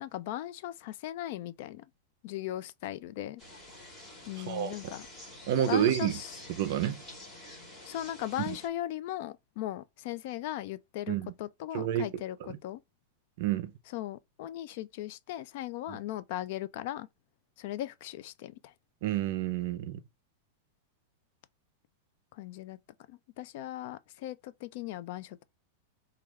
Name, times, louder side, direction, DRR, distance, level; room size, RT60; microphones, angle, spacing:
voice 1, 0.0-1.9 2.2-3.4 4.2-5.1 5.6-6.4 7.8-12.8 13.9-17.1 17.6-18.7 22.3-22.8 23.1-25.4, left 13 dB, 40° left, 0.3 m, -38 dB
sound 1, 3.4-8.7, left 1 dB, 10° left, 1.0 m, -47 dB
voice 2, 5.5-6.1 6.6-7.0 8.5-8.6 11.1-11.3 11.7-12.1 13.4-13.7 19.0-20.0, right 11 dB, 45° right, 0.5 m, -29 dB
4.7 x 2.3 x 3.1 m
supercardioid pair, 180°, 0 cm